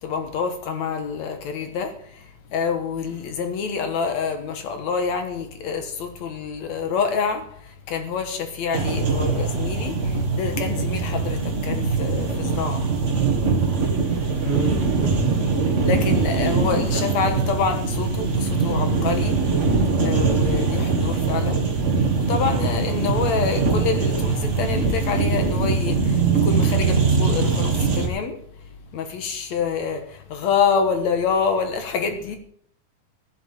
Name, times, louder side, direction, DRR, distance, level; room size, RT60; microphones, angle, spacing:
voice 1, 0.0-2.2 2.5-7.5 7.9-12.9 15.8-19.4 20.0-21.6 22.3-28.4 28.9-32.4, left 6 dB, 65° left, 2.4 m, -26 dB
sound 1, 8.7-28.1, right 4 dB, 35° right, 1.2 m, -22 dB
voice 2, 14.4-15.3 16.4-17.5, right 2 dB, 10° right, 0.7 m, -29 dB
14.0 x 11.0 x 4.3 m
omnidirectional pair, 3.7 m